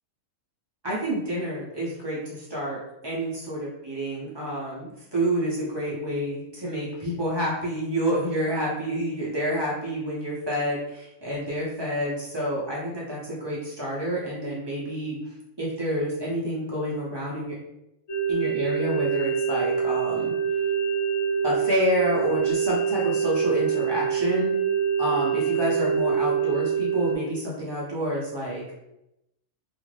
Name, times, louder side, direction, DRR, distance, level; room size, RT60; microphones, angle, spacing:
voice 1, 0.8-15.2 15.6-17.6 18.3-20.3 21.4-24.5 25.0-28.8, equal, 45° right, -6 dB, 0.3 m, -28 dB
sound 1, 18.1-27.2, right 7 dB, 60° left, 1.1 m, -25 dB
2.5 x 2.4 x 3.1 m, 0.86 s
omnidirectional pair, 1.4 m